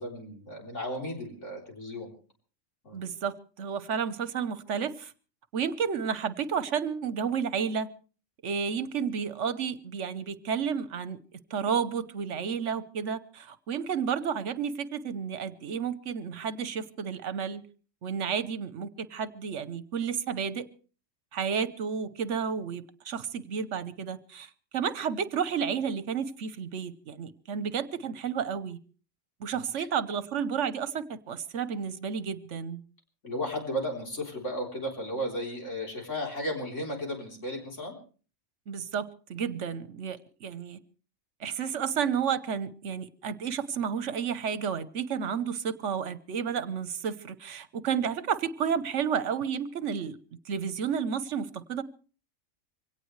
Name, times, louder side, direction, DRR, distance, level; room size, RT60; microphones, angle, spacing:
voice 1, 0.0-2.1 2.8-3.0 29.5-29.9 33.2-37.9, equal, 65° left, 0 dB, 4.2 m, -34 dB
voice 2, 2.9-5.1 5.5-7.9 8.4-11.2 11.5-17.6 18.0-20.7 21.3-28.8 29.4-32.8 38.7-40.8 41.4-50.2 50.5-51.8, right 7 dB, 70° right, 14 dB, 1.3 m, -31 dB
24.0 x 17.5 x 3.2 m, 0.39 s
omnidirectional pair, 1.3 m